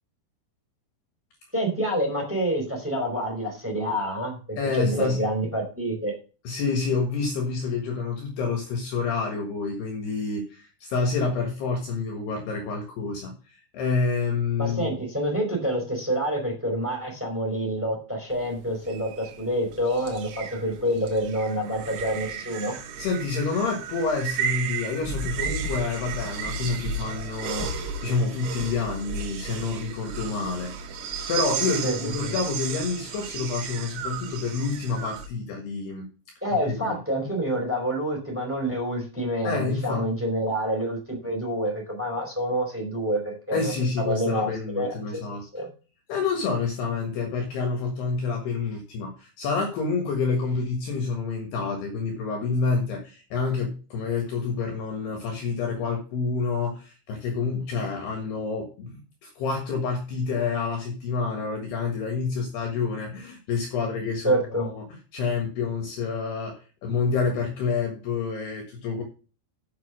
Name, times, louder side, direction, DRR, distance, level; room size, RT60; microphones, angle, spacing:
voice 1, 1.5-6.1 14.6-22.8 31.8-31.9 32.2-32.3 36.4-43.6 44.0-44.5 44.7-45.2 45.5-45.7 64.2-64.7, equal, 5° right, 0 dB, 4.2 m, -27 dB
voice 2, 4.6-5.2 6.4-15.0 23.0-30.9 31.3-36.1 36.5-37.0 39.4-40.1 43.5-45.5 46.1-69.0, left 4 dB, 65° left, 2 dB, 3.3 m, -28 dB
sound 1, 18.3-35.3, right 5 dB, 85° right, 4.2 m, -34 dB
8.1 x 7.5 x 6.3 m, 0.34 s
omnidirectional pair, 5.8 m